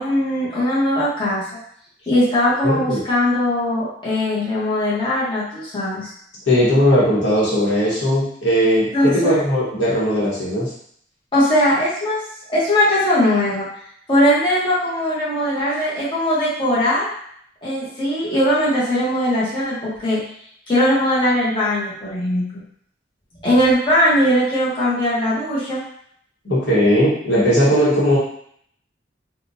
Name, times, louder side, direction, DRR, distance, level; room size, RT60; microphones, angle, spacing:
voice 1, 0.0-1.4 2.1-6.1 8.9-9.4 11.3-12.2 12.5-13.7 14.1-17.1 17.6-20.2 20.7-22.4 23.4-25.8, left 1 dB, 25° left, -9 dB, 1.1 m, -19 dB
voice 2, 2.6-3.0 6.5-10.7 26.4-28.2, equal, 85° left, -7 dB, 1.2 m, -18 dB
3.6 x 2.4 x 2.7 m, 0.65 s
head